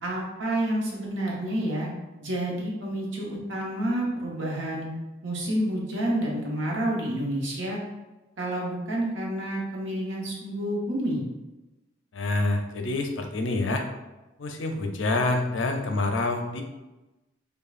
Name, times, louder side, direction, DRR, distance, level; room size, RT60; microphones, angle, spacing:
voice 1, 0.0-1.9 2.2-4.9 5.2-7.8 8.4-11.2, right 1 dB, 80° right, -3 dB, 1.0 m, -29 dB
voice 2, 12.1-13.9 14.4-16.6, left 2 dB, 85° left, 4 dB, 0.5 m, -27 dB
5.1 x 2.3 x 2.4 m, 1.1 s
head